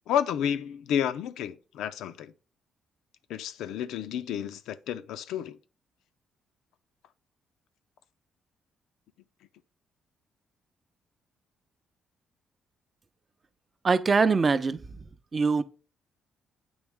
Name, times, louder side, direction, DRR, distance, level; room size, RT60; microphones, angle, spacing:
voice 1, 0.1-2.3 3.3-5.6, left 9 dB, 85° left, 0.4 m, -31 dB
voice 2, 13.8-14.8 15.3-15.6, right 4 dB, 35° right, 0.5 m, -22 dB
8.7 x 3.1 x 3.5 m
cardioid pair, 90°, 0 cm